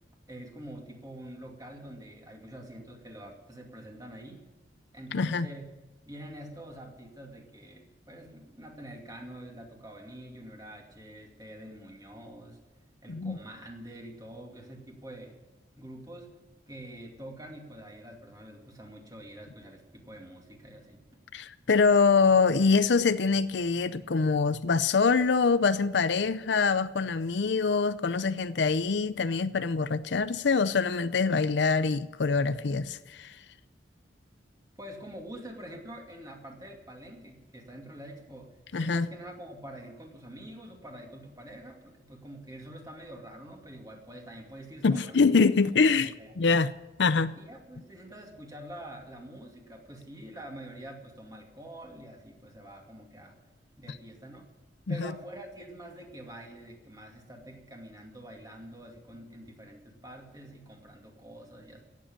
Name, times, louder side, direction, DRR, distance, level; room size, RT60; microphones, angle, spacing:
voice 1, 0.3-4.5 4.9-5.7 6.1-12.6 13.0-15.4 15.8-16.3 16.7-21.2 34.8-46.3 47.4-53.4 53.8-54.5 54.9-61.8, right 1 dB, 20° right, 2.4 m, -46 dB
voice 2, 5.1-5.5 13.1-13.4 21.3-33.4 38.7-39.1 44.8-46.7 47.0-47.4 54.9-55.1, left 4 dB, 75° left, 0.6 m, -24 dB
17.0 x 7.6 x 8.8 m
head